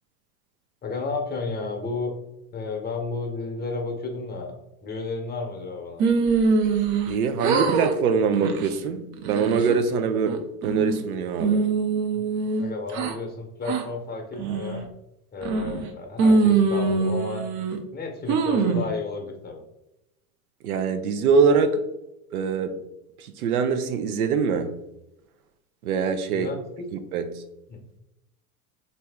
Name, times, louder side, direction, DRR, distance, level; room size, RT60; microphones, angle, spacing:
voice 1, 0.8-2.1 2.5-6.1 12.1-14.9 15.3-17.5 17.9-19.6 26.3-26.9 27.7-27.8, left 3 dB, 20° left, 3 dB, 0.8 m, -32 dB
sound 1, 6.0-7.1 7.4-7.9 8.3-8.7 9.2-9.7 10.3-11.0 11.4-13.1 13.6-13.8 14.4-14.8 15.4-15.9 16.2-17.8 18.3-18.9, right 4 dB, 45° right, 0.6 m, -23 dB
voice 2, 7.1-11.7 20.6-21.8 22.3-22.8 23.2-24.7 25.8-26.5 26.9-27.3, right 5 dB, 90° right, 8 dB, 0.5 m, -23 dB
3.0 x 2.6 x 3.4 m, 0.89 s
hypercardioid pair, 90°, 43 cm